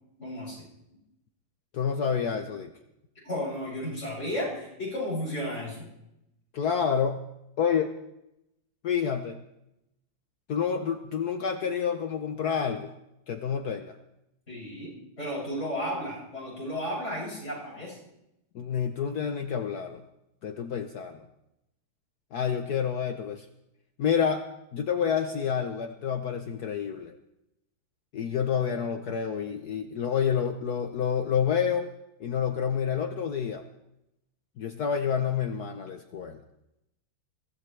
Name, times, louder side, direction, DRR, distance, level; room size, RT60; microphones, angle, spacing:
voice 1, 0.2-0.6 3.2-5.8 14.5-18.0, equal, 35° left, -6 dB, 7.3 m, -33 dB
voice 2, 1.7-2.7 6.5-7.2 7.6-7.9 8.8-9.4 10.5-12.9 13.3-14.0 18.5-20.0 20.4-21.2 22.3-23.5 24.0-24.4 24.7-27.2 28.1-31.9 32.2-33.6 34.6-36.4, left 7 dB, 60° left, 7 dB, 1.2 m, -28 dB
22.5 x 16.5 x 3.3 m, 0.85 s
omnidirectional pair, 2.1 m